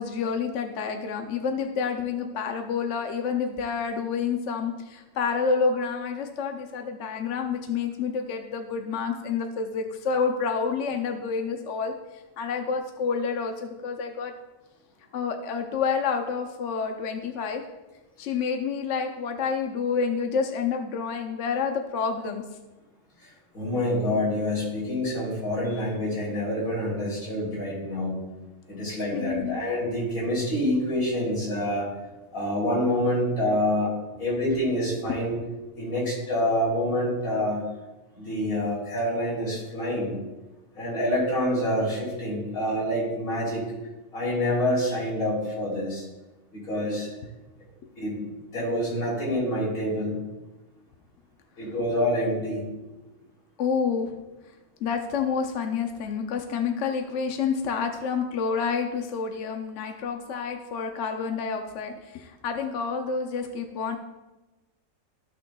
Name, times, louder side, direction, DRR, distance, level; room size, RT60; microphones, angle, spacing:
voice 1, 0.0-11.9 12.4-14.3 15.1-17.6 18.2-22.4 29.1-29.6 35.1-35.2 53.6-54.2 54.8-64.0, left 5 dB, 65° left, 4 dB, 1.0 m, -28 dB
voice 2, 23.2-28.1 28.7-31.9 32.3-35.4 35.8-37.6 38.2-40.2 40.8-43.6 44.1-46.1 46.5-47.1 48.0-50.2 51.6-52.6, left 1 dB, 85° left, -5 dB, 3.8 m, -27 dB
14.5 x 6.1 x 2.3 m, 1.1 s
omnidirectional pair, 1.4 m